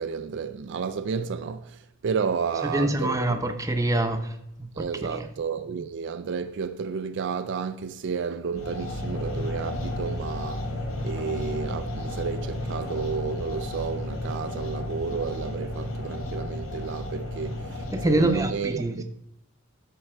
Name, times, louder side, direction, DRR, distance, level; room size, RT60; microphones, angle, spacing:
voice 1, 0.0-3.5 4.7-10.8 11.0-19.0, right 5 dB, 60° right, 0.4 m, -31 dB
voice 2, 2.6-4.2 4.6-4.7 5.1-5.3 17.9-19.0, right 1 dB, 15° right, 0.8 m, -25 dB
sound 1, 8.5-18.5, left 1 dB, 70° left, 1.5 m, -33 dB
12.5 x 4.5 x 4.4 m
head